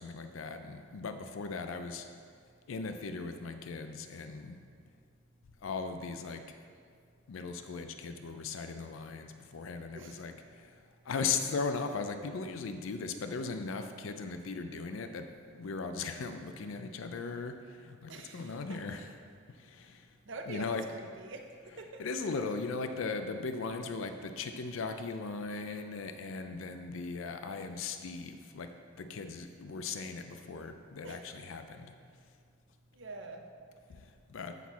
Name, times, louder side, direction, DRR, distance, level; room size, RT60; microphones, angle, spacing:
voice 1, 0.0-2.1 2.7-4.6 5.6-6.5 7.3-19.1 19.5-20.1 20.5-20.8 22.0-31.9 33.9-34.6, left 4 dB, 75° left, 8 dB, 0.4 m, -38 dB
voice 2, 18.1-19.1 20.2-21.5 21.8-22.3 31.0-31.2 32.9-33.4, right 2 dB, 65° right, 4 dB, 0.7 m, -46 dB
8.2 x 6.0 x 4.1 m, 2.2 s
head